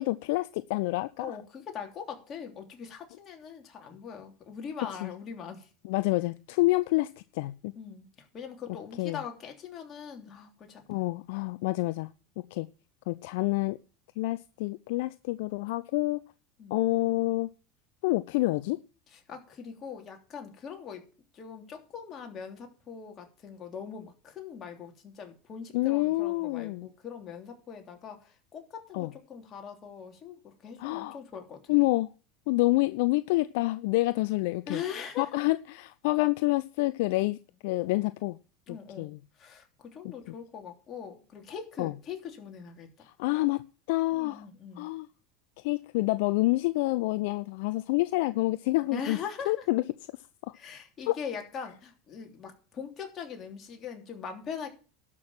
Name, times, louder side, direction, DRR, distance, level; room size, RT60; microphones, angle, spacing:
voice 1, 0.0-1.3 5.0-5.1 5.8-7.7 9.0-9.2 10.9-12.1 12.5-12.7 13.1-13.8 14.2-16.2 16.7-17.5 18.0-18.8 25.7-26.9 28.9-29.1 30.8-31.2 31.7-32.1 32.5-34.8 35.2-38.4 38.7-39.2 40.0-40.1 41.8-41.9 43.2-43.6 43.9-44.4 44.8-45.1 45.6-49.2 49.5-49.8 50.4-50.5 51.1-51.2, left 20 dB, 70° left, 14 dB, 0.5 m, -28 dB
voice 2, 1.2-5.7 7.7-10.8 16.6-16.8 19.1-21.1 21.3-31.8 34.7-35.4 38.7-43.1 44.1-44.9 48.9-49.6 50.5-54.7, left 7 dB, 35° left, 3 dB, 3.1 m, -41 dB
12.0 x 6.1 x 7.5 m, 0.37 s
hypercardioid pair, 95°, 0 cm